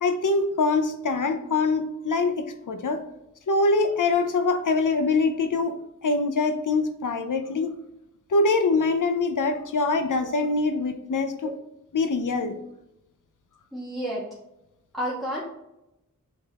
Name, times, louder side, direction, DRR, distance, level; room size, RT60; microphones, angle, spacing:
voice 1, 0.0-3.0 3.5-5.7 6.0-7.7 8.3-11.5 11.9-12.6, left 3 dB, 90° left, 8 dB, 0.7 m, -24 dB
voice 2, 13.7-14.3 14.9-15.4, equal, ahead, -6 dB, 1.4 m, -30 dB
8.2 x 3.9 x 3.0 m, 0.88 s
wide cardioid pair, 70°, 30 cm